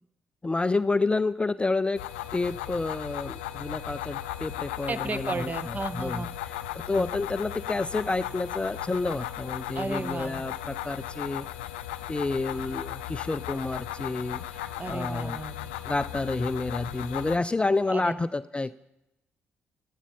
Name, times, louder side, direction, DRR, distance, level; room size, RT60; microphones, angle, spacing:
voice 1, 0.4-2.1 2.3-11.5 12.1-15.4 15.9-18.7, left 3 dB, 20° left, 16 dB, 0.4 m, -29 dB
sound 1, 2.0-17.4, left 12 dB, 80° left, 0.5 m, -36 dB
voice 2, 4.9-6.3 9.7-10.4 14.8-15.7 17.9-18.2, right 3 dB, 30° right, 13 dB, 0.9 m, -34 dB
13.0 x 11.0 x 5.7 m, 0.90 s
hypercardioid pair, 45°, 6 cm